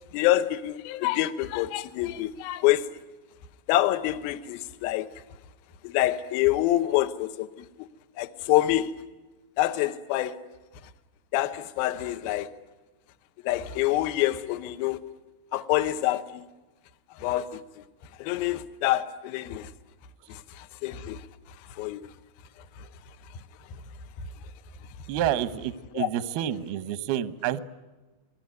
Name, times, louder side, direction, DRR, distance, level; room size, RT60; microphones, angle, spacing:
voice 1, 0.1-3.0 3.7-5.1 5.8-7.9 8.2-9.0 9.6-10.5 11.3-12.6 13.4-15.1 15.5-16.5 17.1-17.8 18.2-19.7 20.3-21.3 21.7-22.1 22.8-22.9 25.9-26.1, left 14 dB, 85° left, 2.1 m, -27 dB
voice 2, 25.1-27.6, right 11 dB, 75° right, 2.3 m, -29 dB
28.5 x 19.5 x 9.4 m
omnidirectional pair, 5.7 m